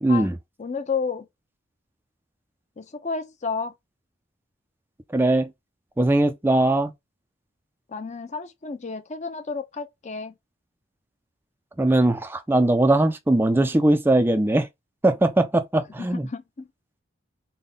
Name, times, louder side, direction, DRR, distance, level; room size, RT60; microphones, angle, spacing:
voice 1, 0.0-0.3 5.1-5.5 6.0-6.9 11.8-14.7 15.0-16.2, right 2 dB, 10° right, 0.3 m, -20 dB
voice 2, 0.6-1.3 2.8-3.7 7.9-10.3 16.0-16.7, left 5 dB, 35° left, 0.6 m, -31 dB
3.6 x 2.2 x 3.7 m
head